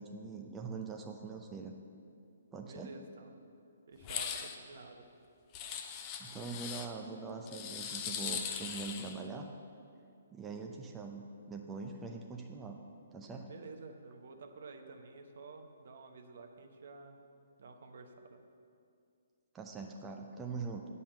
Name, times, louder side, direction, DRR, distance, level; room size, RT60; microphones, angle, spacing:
voice 1, 0.0-1.7 2.5-2.9 6.2-9.5 10.3-12.8 13.1-13.5 19.5-20.9, right 4 dB, 15° right, 1 dB, 0.6 m, -43 dB
voice 2, 2.7-3.4 3.9-5.0 13.4-17.2 17.6-18.4, right 3 dB, 60° right, 5 dB, 1.0 m, -51 dB
sound 1, 4.0-4.6 5.5-6.9 7.5-9.2, left 8 dB, 30° left, 0.7 m, -40 dB
8.7 x 5.5 x 7.7 m, 2.4 s
figure-of-eight pair, 130°, 0 cm